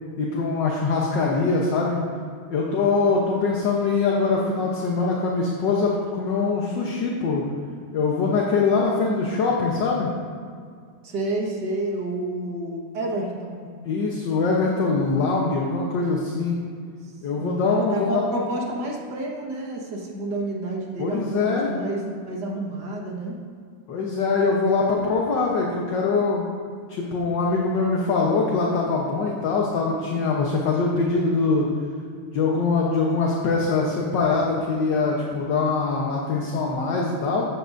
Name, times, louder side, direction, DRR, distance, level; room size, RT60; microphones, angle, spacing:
voice 1, 0.2-2.0 2.5-7.4 7.9-10.1 13.8-16.6 17.2-18.3 21.0-21.7 23.9-26.4 26.9-31.7 32.3-37.5, left 4 dB, 65° left, -2 dB, 1.6 m, -23 dB
voice 2, 2.8-3.4 11.0-13.7 17.4-23.4, right 2 dB, 55° right, -1 dB, 1.9 m, -30 dB
14.5 x 9.2 x 2.6 m, 2.1 s
omnidirectional pair, 2.3 m